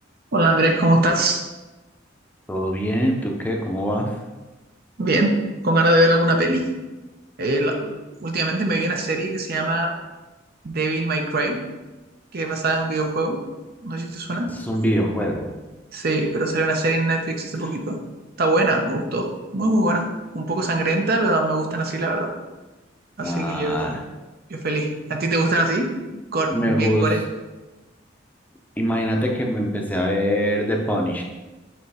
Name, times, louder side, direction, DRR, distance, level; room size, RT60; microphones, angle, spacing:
voice 1, 0.3-1.4 5.0-5.4 5.6-6.7 7.4-7.9 8.2-9.9 10.6-11.6 12.3-13.4 13.8-14.5 15.9-18.0 18.4-20.1 20.3-22.3 23.2-23.9 24.5-27.2, right 2 dB, 55° right, 3 dB, 0.8 m, -22 dB
voice 2, 2.5-4.1 14.5-15.5 23.2-24.0 26.5-27.1 28.8-31.2, equal, 10° left, 1 dB, 0.6 m, -23 dB
7.0 x 3.1 x 4.9 m, 1.1 s
head